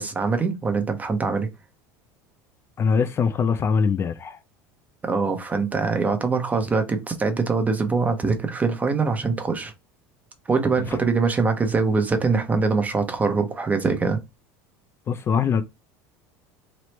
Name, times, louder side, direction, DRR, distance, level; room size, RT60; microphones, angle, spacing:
voice 1, 0.0-1.5 5.0-9.7 10.5-14.2, right 4 dB, 20° right, 0.7 m, -23 dB
voice 2, 2.8-4.4 15.1-15.6, left 6 dB, 30° left, 0.3 m, -22 dB
3.0 x 2.0 x 2.9 m
supercardioid pair, 110°, 8 cm